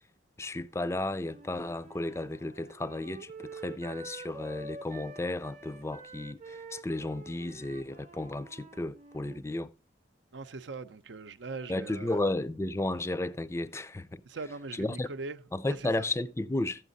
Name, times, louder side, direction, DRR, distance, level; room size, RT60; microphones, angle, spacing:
voice 1, 0.4-9.7 11.7-14.2 14.7-15.1 15.5-16.8, left 2 dB, 15° left, 0.4 m, -33 dB
Wind instrument woodwind instrument, 1.2-9.4, right 3 dB, 40° right, 0.8 m, -47 dB
voice 2, 10.3-12.2 14.2-15.4 15.6-16.1, right 3 dB, 75° right, 0.7 m, -41 dB
13.5 x 7.3 x 4.0 m
head